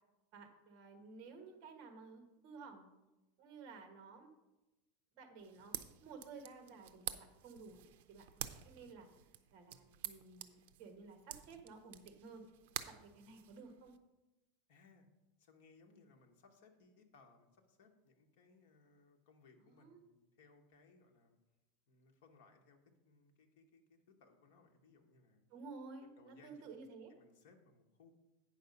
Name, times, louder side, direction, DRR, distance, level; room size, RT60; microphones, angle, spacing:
voice 1, 0.3-2.9 3.4-4.3 5.1-5.7 6.0-7.8 8.1-9.1 9.5-12.4 12.8-13.9 19.6-20.0 25.5-27.1, right 4 dB, 35° right, 5 dB, 1.4 m, -54 dB
sound 1, 5.4-14.0, right 12 dB, 60° right, 0.5 m, -49 dB
voice 2, 14.7-15.1 15.4-21.4 21.9-25.4 26.2-26.8 27.1-28.1, left 4 dB, 55° left, 3 dB, 1.4 m, -66 dB
9.1 x 5.8 x 5.4 m, 1.0 s
supercardioid pair, 175°, 0 cm